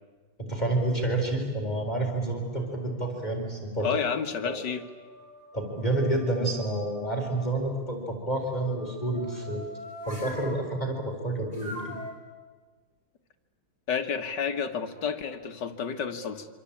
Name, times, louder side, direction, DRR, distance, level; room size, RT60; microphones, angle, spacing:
voice 1, 0.4-3.9 4.4-4.6 5.5-9.7 10.1-11.9, right 2 dB, 20° left, 2 dB, 4.2 m, -29 dB
sound 1, 2.4-3.0 3.6-7.5 8.3-10.6 11.5-12.1, equal, 25° right, 6.0 m, -45 dB
voice 2, 3.8-4.8 13.9-16.5, left 6 dB, 55° left, 6 dB, 2.2 m, -30 dB
26.5 x 25.5 x 8.7 m, 1.4 s
omnidirectional pair, 2.3 m